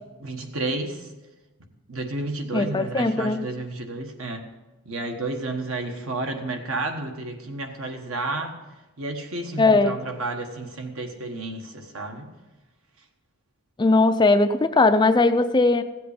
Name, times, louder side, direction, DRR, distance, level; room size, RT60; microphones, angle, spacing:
voice 1, 0.2-1.1 1.9-4.5 4.8-8.6 9.0-12.3, right 2 dB, 70° right, 4 dB, 1.4 m, -31 dB
voice 2, 2.5-3.4 9.6-10.0 13.8-15.8, left 3 dB, 20° left, 10 dB, 0.4 m, -19 dB
15.5 x 7.9 x 5.1 m, 1.1 s
head